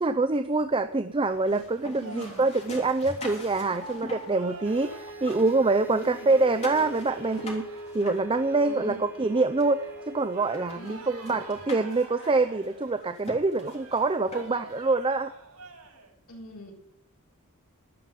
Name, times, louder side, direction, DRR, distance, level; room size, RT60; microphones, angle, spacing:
voice 1, 0.0-7.7 7.9-15.3, right 3 dB, 25° right, 8 dB, 0.5 m, -25 dB
sound 1, 1.2-4.9 5.2-8.9 9.6-9.7 10.1-10.2 10.5-14.8, left 2 dB, 30° left, 3.3 m, -44 dB
voice 2, 2.0-2.4 5.9-6.3 8.6-9.0 10.7-11.1 16.3-16.7, equal, 80° left, -2 dB, 6.8 m, -43 dB
sound 2, 2.0-16.1, right 3 dB, 85° right, 5.8 m, -48 dB
sound 3, 4.6-12.4, right 1 dB, 10° right, 1.1 m, -43 dB
13.5 x 12.0 x 5.2 m, 0.73 s
head